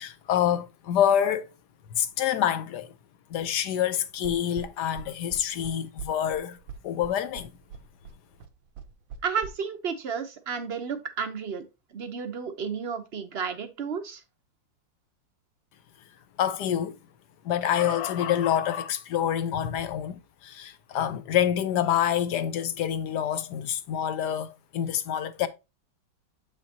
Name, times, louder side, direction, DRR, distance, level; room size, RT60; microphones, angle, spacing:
voice 1, 0.0-1.5 1.9-2.9 3.3-7.5 16.4-17.0 17.4-25.5, left 10 dB, 65° left, 1.1 m, -27 dB
sound 1, 4.2-9.5, right 5 dB, 80° right, 1.5 m, -41 dB
voice 2, 9.2-11.6 11.9-14.2, right 6 dB, 50° right, 0.7 m, -32 dB
7.6 x 5.6 x 2.8 m
omnidirectional pair, 2.1 m